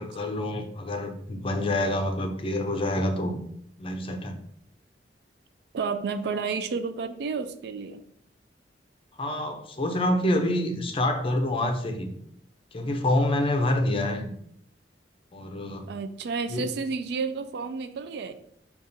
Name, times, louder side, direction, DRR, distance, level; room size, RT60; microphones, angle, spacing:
voice 1, 0.0-3.4 3.8-4.4 9.2-12.1 12.7-14.3 15.3-15.9 16.5-16.7, left 1 dB, 30° left, 5 dB, 0.5 m, -27 dB
voice 2, 5.7-8.0 15.9-18.3, right 5 dB, 65° right, 9 dB, 0.3 m, -31 dB
5.1 x 2.4 x 2.7 m, 0.68 s
head